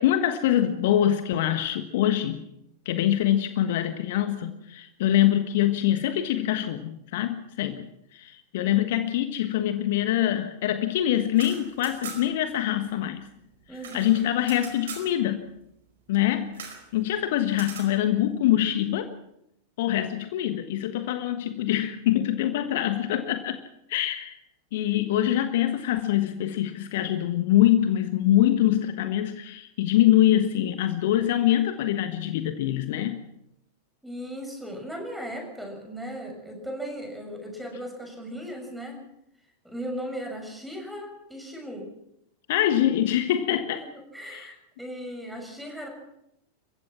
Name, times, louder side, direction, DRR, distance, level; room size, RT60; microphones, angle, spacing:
voice 1, 0.0-2.4 2.8-7.8 8.1-13.3 13.9-15.5 16.1-19.1 19.8-23.6 23.9-24.4 24.7-33.2 42.5-43.8 44.3-44.5, left 12 dB, 55° left, 9 dB, 1.3 m, -24 dB
sound 1, 11.2-12.5 12.7-12.8 13.1-15.1 16.5-16.9 17.5-17.9, right 7 dB, 60° right, 4.7 m, -41 dB
voice 2, 13.7-14.1 34.0-39.0 39.6-41.9 44.1-45.9, equal, 5° right, 2 dB, 6.7 m, -37 dB
29.5 x 15.5 x 6.1 m, 0.79 s
figure-of-eight pair, 90°, 0 cm